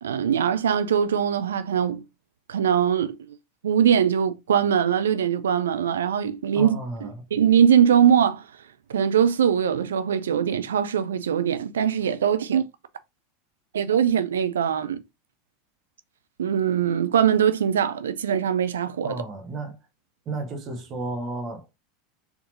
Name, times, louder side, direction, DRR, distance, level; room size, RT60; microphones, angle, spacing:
voice 1, 0.0-2.0 2.5-3.2 3.6-6.8 7.3-8.4 8.9-12.7 13.7-15.0 16.4-19.2, right 8 dB, 70° right, 0.4 m, -21 dB
voice 2, 6.5-7.2 19.0-19.8 20.3-21.7, right 2 dB, 35° right, 0.9 m, -33 dB
4.2 x 2.8 x 2.6 m
figure-of-eight pair, 80°, 0 cm